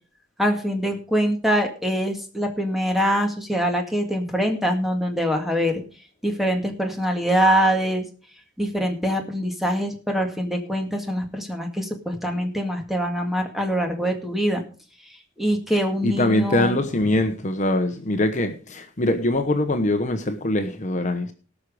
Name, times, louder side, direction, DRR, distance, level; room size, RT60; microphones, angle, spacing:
voice 1, 0.4-5.8 6.2-8.0 8.6-14.6 15.4-16.8, equal, ahead, 2.0 m, -24 dB
voice 2, 16.0-21.3, left 1 dB, 40° left, 1.1 m, -23 dB
18.5 x 6.2 x 5.0 m
head